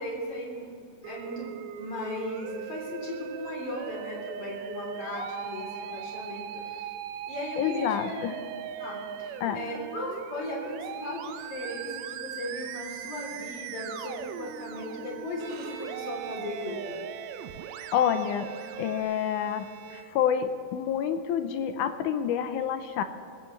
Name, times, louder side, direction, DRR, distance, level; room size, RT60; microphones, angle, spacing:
voice 1, 0.0-6.9 7.3-8.3 8.8-17.0, left 1 dB, 40° left, -2 dB, 4.3 m, -37 dB
Musical instrument, 1.0-19.0, right 8 dB, 90° right, 2.6 m, -39 dB
voice 2, 7.6-8.4 9.4-9.6 17.9-18.5 18.8-23.0, left 9 dB, 75° left, 9 dB, 1.9 m, -28 dB
Bowed string instrument, 15.3-20.6, right 9 dB, 75° right, 2.7 m, -45 dB
20.5 x 16.5 x 3.3 m, 2.3 s
omnidirectional pair, 4.2 m